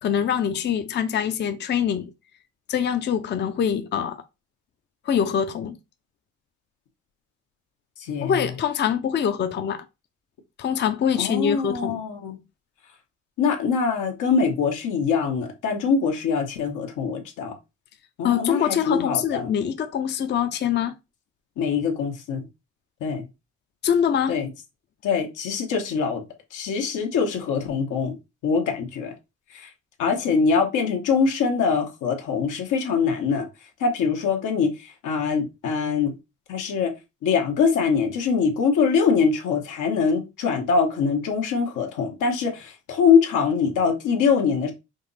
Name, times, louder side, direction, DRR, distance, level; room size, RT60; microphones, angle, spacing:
voice 1, 0.0-2.1 2.7-4.2 5.1-5.8 8.2-9.8 10.6-12.0 18.2-20.9 23.8-24.4, left 8 dB, 35° left, 0.5 m, -24 dB
voice 2, 11.2-12.3 13.4-17.5 18.2-19.5 21.6-22.4 23.0-23.2 24.3-24.5 25.0-26.2 26.5-28.1 28.4-29.1 29.5-29.7 30.0-33.4 33.8-36.1 36.5-36.9 37.2-44.7, left 5 dB, 85° left, 1.1 m, -23 dB
5.2 x 2.0 x 3.9 m
cardioid pair, 90°, 30 cm